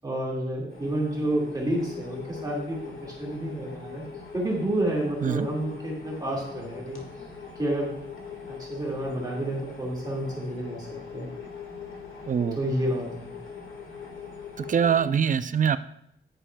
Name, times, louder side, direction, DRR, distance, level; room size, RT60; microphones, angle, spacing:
voice 1, 0.0-4.0 4.3-7.0 7.6-7.9 8.5-10.9 11.1-11.3 12.6-13.3, right 1 dB, 20° right, -3 dB, 1.9 m, -30 dB
sound 1, 0.7-15.1, left 6 dB, 75° left, 1.8 m, -41 dB
voice 2, 12.3-12.6 14.6-15.8, right 7 dB, 40° right, 13 dB, 0.4 m, -23 dB
10.0 x 9.9 x 2.2 m, 0.74 s
wide cardioid pair, 145°, 21 cm